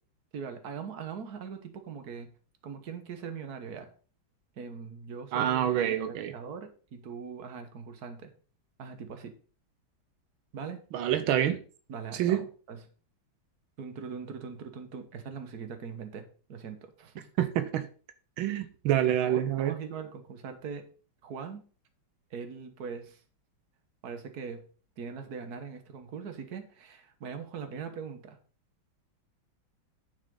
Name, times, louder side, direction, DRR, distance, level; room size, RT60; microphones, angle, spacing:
voice 1, 0.3-2.3 2.6-3.9 4.6-8.3 8.8-9.3 10.5-10.8 11.9-12.8 13.8-17.3 18.9-20.8 21.2-21.6 22.3-23.2 24.0-24.7 25.0-28.4, right 6 dB, 55° right, 1.8 m, -41 dB
voice 2, 5.3-6.3 10.9-11.6 12.1-12.4 17.4-17.9 18.4-19.7, right 11 dB, 85° right, 1.6 m, -27 dB
9.8 x 7.5 x 3.9 m
omnidirectional pair, 2.2 m